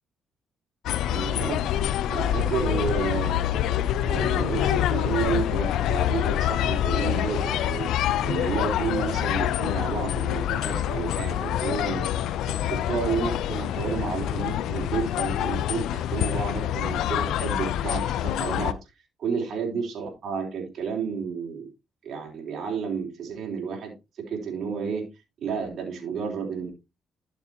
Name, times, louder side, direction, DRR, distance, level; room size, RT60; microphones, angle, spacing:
sound 1, 0.8-18.7, left 11 dB, 85° left, 0.5 m, -26 dB
voice 1, 1.1-1.6 2.1-3.4 4.0-7.9 8.2-12.1 12.7-18.8 19.2-21.7 22.0-23.9 24.3-25.1 25.4-26.7, right 6 dB, 65° right, -1 dB, 3.6 m, -31 dB
12.5 x 6.6 x 2.9 m, 0.25 s
cardioid pair, 90°, 0 cm